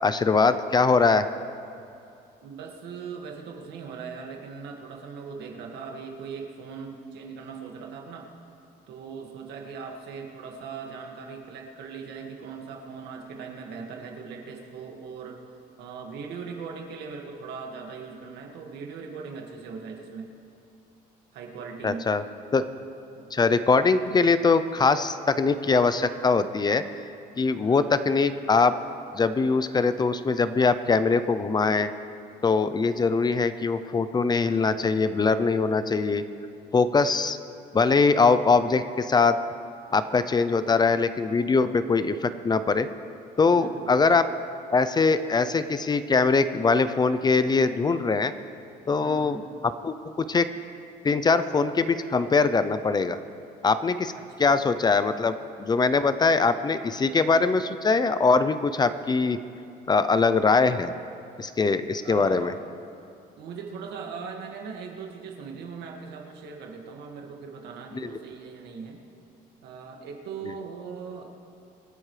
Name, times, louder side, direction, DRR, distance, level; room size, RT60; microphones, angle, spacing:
voice 1, 0.0-1.2 21.8-22.2 22.5-22.6 23.3-26.8 27.4-28.7 29.1-31.9 32.4-36.2 36.7-37.4 37.7-39.4 39.9-42.9 43.4-44.3 44.7-48.3 48.9-50.5 51.0-53.2 53.6-54.1 54.4-59.4 59.9-60.9 61.4-62.5 68.0-68.1, left 4 dB, 25° left, 12 dB, 0.5 m, -22 dB
voice 2, 2.4-8.3 8.9-15.4 15.8-20.3 21.3-22.0 23.2-23.3 27.6-28.0 43.5-44.1 49.0-49.4 54.1-54.6 62.0-62.6 63.4-69.0 69.6-71.3, right 5 dB, 80° right, 1 dB, 2.0 m, -39 dB
26.0 x 10.0 x 3.3 m, 2.5 s
cardioid pair, 110°, 17 cm